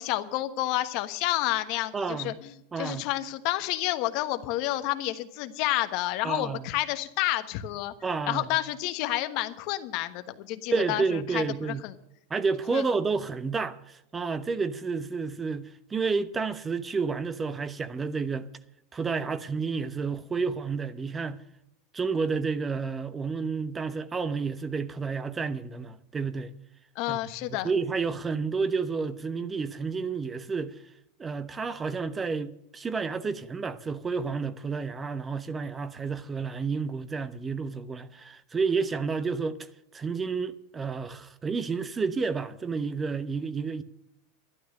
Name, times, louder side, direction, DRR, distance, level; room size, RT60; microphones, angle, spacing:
voice 1, 0.0-2.5 2.8-7.9 8.3-11.9 12.7-12.8 26.9-27.7, left 16 dB, 55° left, 1.2 m, -30 dB
voice 2, 1.9-2.4 2.7-3.0 6.2-6.7 8.0-8.6 10.7-11.8 12.3-18.5 18.9-21.4 21.9-26.5 27.1-30.8 31.2-39.6 39.9-43.8, right 4 dB, 20° right, 0.9 m, -30 dB
12.0 x 11.5 x 6.6 m
hypercardioid pair, 100°, 0 cm